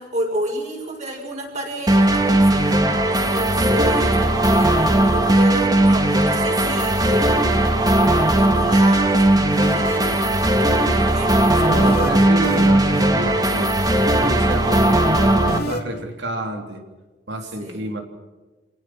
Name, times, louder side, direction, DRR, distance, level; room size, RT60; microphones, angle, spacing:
voice 1, 0.0-2.7 3.1-4.2 4.5-7.3 8.0-12.1 17.6-17.8, right 1 dB, 40° right, 0 dB, 6.8 m, -30 dB
sound 1, 1.9-15.6, right 1 dB, 20° right, 1.9 m, -17 dB
sound 2, 9.6-10.2 11.7-12.1 12.4-13.0 15.5-15.8, left 1 dB, 60° left, 2.8 m, -28 dB
voice 2, 11.6-16.8 17.3-18.0, right 1 dB, 80° right, 4 dB, 3.4 m, -29 dB
27.5 x 18.5 x 6.3 m, 1.2 s
head